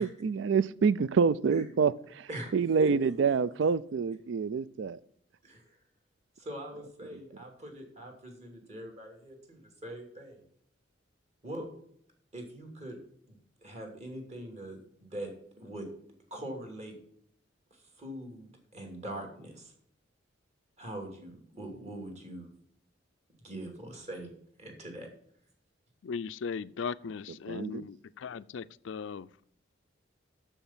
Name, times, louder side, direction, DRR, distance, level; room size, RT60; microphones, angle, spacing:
voice 1, 0.0-5.0 27.5-27.9, right 5 dB, 70° right, 0.4 m, -27 dB
voice 2, 2.8-3.4 5.4-5.6 6.4-10.5 11.4-11.6 12.3-13.0 13.3-15.3 15.6-15.9 16.3-17.0 18.0-19.7 20.8-22.6 23.4-24.3 24.6-25.1, right 1 dB, 35° right, 2.7 m, -42 dB
voice 3, 26.0-29.3, left 5 dB, 70° left, 0.4 m, -38 dB
7.2 x 6.9 x 7.3 m
head